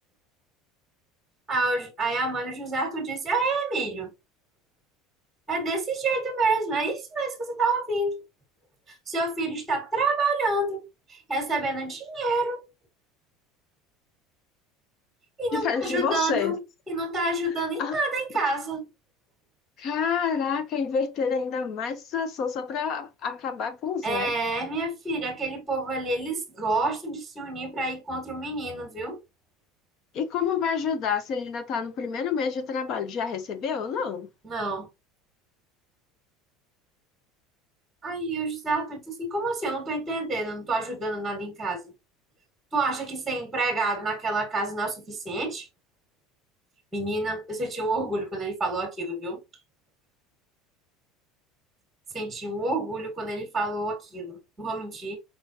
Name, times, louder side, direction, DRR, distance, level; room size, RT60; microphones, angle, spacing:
voice 1, 1.5-4.1 5.5-8.2 8.9-10.8 11.1-12.6 15.4-16.6 16.9-18.9 24.0-29.2 34.4-34.9 38.0-41.9 42.7-45.7 46.9-49.4 52.1-55.2, right 2 dB, 10° right, 1.7 m, -28 dB
voice 2, 15.5-16.6 17.8-18.0 19.8-24.3 30.1-34.3, left 6 dB, 40° left, 0.9 m, -28 dB
4.7 x 3.8 x 2.9 m
cardioid pair, 160°, 0 cm